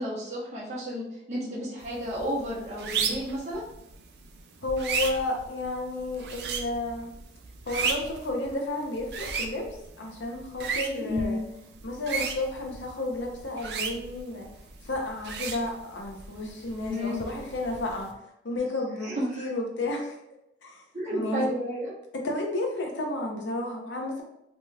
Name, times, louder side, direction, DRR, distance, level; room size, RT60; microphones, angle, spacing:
voice 1, 0.0-3.6 11.1-11.4 16.8-17.2 18.9-19.5 20.9-21.9, equal, 40° right, -7 dB, 0.8 m, -32 dB
sound 1, 1.8-18.1, right 5 dB, 65° right, 0.4 m, -36 dB
voice 2, 4.6-7.1 7.7-9.7 10.0-11.4 11.8-14.5 14.8-18.1 18.4-20.2 20.6-20.8 21.1-21.5 22.1-24.2, left 2 dB, 90° left, 1 dB, 0.7 m, -32 dB
3.0 x 2.2 x 3.2 m, 0.82 s
head